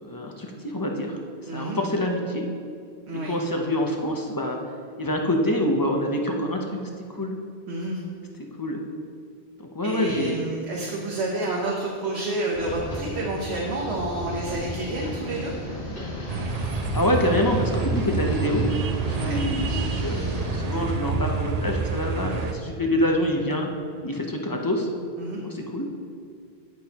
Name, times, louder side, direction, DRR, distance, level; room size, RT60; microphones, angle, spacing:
voice 1, 0.0-1.2 1.5-2.5 3.1-4.6 5.0-6.8 7.1-7.4 8.6-8.8 9.6-10.4 16.9-18.7 19.1-23.7 24.0-24.9 25.4-25.9, left 1 dB, 20° left, 1 dB, 0.8 m, -26 dB
voice 2, 1.5-1.8 3.1-3.3 7.7-8.0 9.8-15.5 19.2-19.4 25.2-25.4, right 2 dB, 85° right, -3 dB, 1.3 m, -29 dB
sound 1, 12.5-20.8, left 1 dB, 55° left, 2.4 m, -34 dB
sound 2, 16.3-22.5, right 4 dB, 50° right, 0.6 m, -28 dB
15.0 x 6.2 x 2.9 m, 2.2 s
omnidirectional pair, 1.1 m